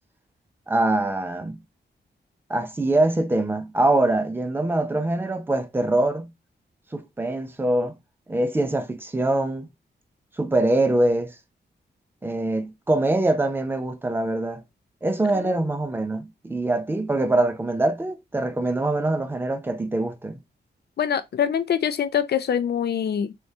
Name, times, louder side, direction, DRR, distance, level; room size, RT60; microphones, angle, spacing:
voice 1, 0.7-1.6 2.5-6.3 6.9-7.9 8.3-9.7 10.4-11.3 12.2-14.6 15.0-20.4, right 2 dB, 10° right, 0.5 m, -23 dB
voice 2, 21.0-23.3, left 8 dB, 60° left, 0.5 m, -24 dB
3.7 x 3.5 x 2.7 m
wide cardioid pair, 160°, 19 cm